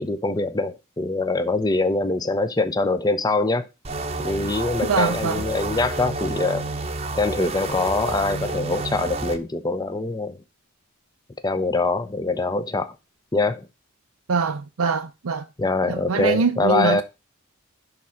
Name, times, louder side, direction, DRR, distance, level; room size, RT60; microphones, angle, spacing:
voice 1, 0.0-3.7 4.2-6.7 7.1-10.4 11.4-12.9 13.3-13.7 15.6-17.0, left 2 dB, 20° left, 0.6 m, -23 dB
sound 1, 3.8-9.4, right 3 dB, 30° right, 0.9 m, -30 dB
voice 2, 4.9-5.4 14.3-15.5 15.9-17.0, right 5 dB, 85° right, 0.6 m, -23 dB
11.0 x 3.8 x 5.6 m
head